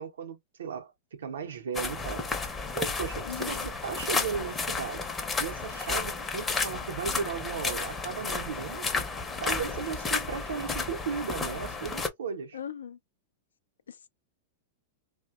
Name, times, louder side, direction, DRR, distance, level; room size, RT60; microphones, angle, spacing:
voice 1, 0.0-2.3 2.7-5.1 5.4-8.9 9.4-12.6, right 6 dB, 80° right, 0.6 m, -36 dB
sound 1, 1.7-12.1, left 4 dB, 20° left, 0.6 m, -32 dB
voice 2, 3.2-3.7 12.5-13.0 13.9-14.1, left 8 dB, 85° left, 0.3 m, -39 dB
2.6 x 2.1 x 2.3 m
hypercardioid pair, 105°, 0 cm